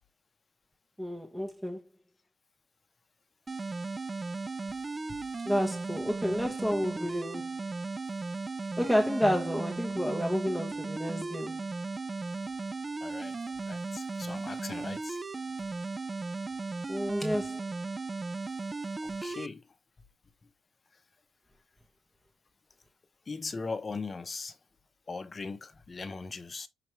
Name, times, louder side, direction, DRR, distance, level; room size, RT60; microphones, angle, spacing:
voice 1, 1.0-1.8 5.4-7.5 8.8-11.6 16.9-17.6, equal, 5° right, 1.0 m, -30 dB
sound 1, 3.5-19.5, right 3 dB, 25° right, 0.3 m, -36 dB
voice 2, 13.0-13.4 13.7-15.2 19.0-19.7 23.3-24.6 25.1-26.7, left 4 dB, 30° left, 0.8 m, -39 dB
5.8 x 2.9 x 3.1 m
cardioid pair, 90°, 0 cm